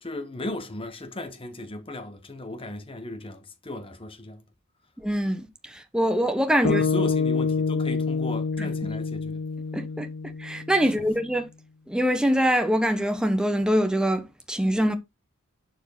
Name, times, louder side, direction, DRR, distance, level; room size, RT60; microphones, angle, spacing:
voice 1, 0.0-4.4 6.6-9.4 11.0-11.1, left 1 dB, 25° left, 1.1 m, -36 dB
voice 2, 5.0-6.8 8.6-8.9 9.7-10.1 10.4-11.5 11.9-14.9, equal, 5° right, 1.1 m, -24 dB
sound 1, 6.6-11.0, left 5 dB, 55° left, 0.8 m, -27 dB
11.5 x 4.6 x 4.1 m
head